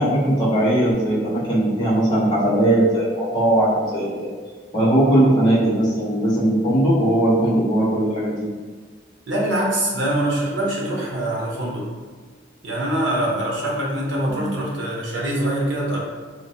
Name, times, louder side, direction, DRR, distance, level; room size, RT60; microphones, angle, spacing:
voice 1, 0.0-4.1 4.7-8.4 14.3-14.5, right 1 dB, 25° left, -10 dB, 0.9 m, -19 dB
voice 2, 9.3-11.9 12.6-16.0, right 1 dB, 90° right, -3 dB, 0.8 m, -24 dB
3.0 x 2.5 x 2.7 m, 1.4 s
head